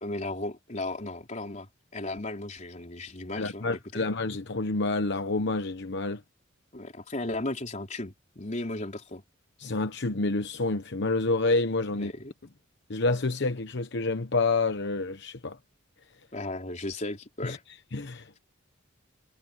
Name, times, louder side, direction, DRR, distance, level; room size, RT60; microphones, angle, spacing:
voice 1, 0.0-4.1 6.7-9.2 12.0-12.3 16.3-17.6, left 2 dB, 40° left, 3.7 m, -35 dB
voice 2, 3.4-6.2 9.6-12.1 12.9-15.6 17.4-17.6 17.9-18.5, left 3 dB, 65° left, 1.0 m, -28 dB
head